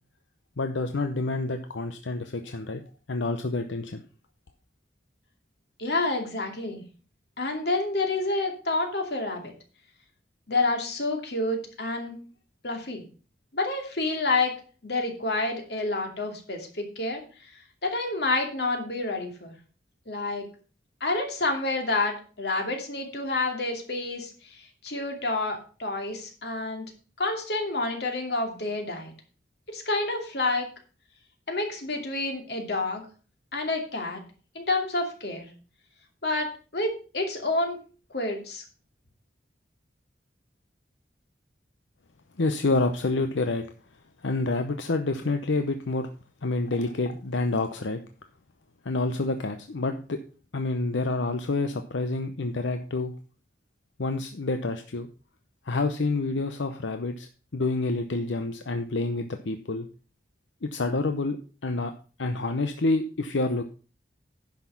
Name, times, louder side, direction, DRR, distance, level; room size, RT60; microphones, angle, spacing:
voice 1, 0.6-2.8 3.1-4.0 42.4-43.6 44.2-46.1 46.4-48.0 48.8-50.2 50.5-53.1 54.0-55.1 55.7-57.3 57.5-59.9 60.6-61.4 61.6-61.9 62.2-63.6, left 3 dB, 90° left, 7 dB, 0.8 m, -28 dB
voice 2, 5.8-6.8 7.4-9.5 10.5-12.2 12.6-13.0 13.5-17.5 17.8-19.5 20.1-20.5 21.0-26.9 27.2-29.1 29.7-30.7 31.5-33.1 33.5-34.2 34.5-35.5 36.2-37.8 38.1-38.6, left 2 dB, 60° left, 3 dB, 2.6 m, -29 dB
10.5 x 6.0 x 5.6 m, 0.37 s
head